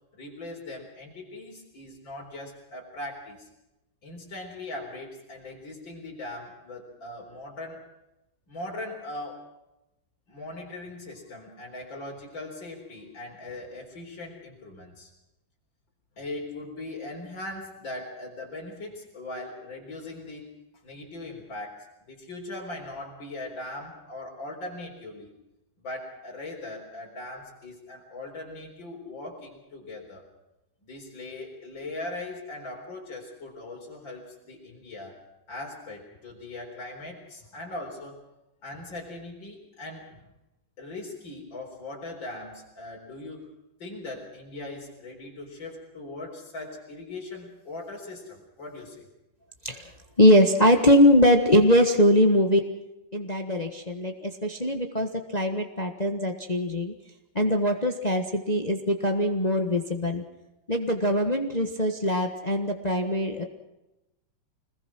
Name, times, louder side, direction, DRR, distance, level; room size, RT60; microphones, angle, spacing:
voice 1, 0.1-3.5 4.0-7.9 8.5-9.4 10.3-15.1 16.2-20.5 20.8-25.3 25.8-30.2 30.8-35.1 35.5-38.1 38.6-40.3 40.8-43.5 43.8-49.1, left 2 dB, 70° left, -2 dB, 4.9 m, -40 dB
voice 2, 50.2-52.7 53.1-56.9 57.3-60.2 60.7-63.4, equal, 20° left, 5 dB, 1.4 m, -22 dB
26.5 x 20.5 x 6.1 m, 0.95 s
omnidirectional pair, 2.1 m